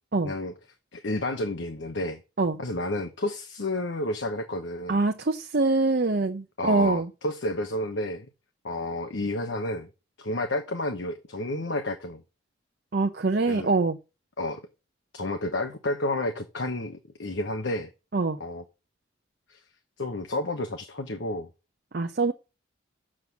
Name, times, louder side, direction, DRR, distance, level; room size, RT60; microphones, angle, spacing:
voice 1, 0.9-2.2 2.6-5.0 6.6-8.3 8.6-9.9 10.2-12.2 13.5-13.7 14.4-14.6 15.1-17.9 18.4-18.6 19.5-19.6 20.0-21.5, left 1 dB, 70° left, 1.0 m, -31 dB
voice 2, 4.9-7.1 12.9-14.0 18.1-18.4 21.9-22.3, right 3 dB, 50° right, 0.6 m, -24 dB
7.4 x 6.2 x 7.0 m
head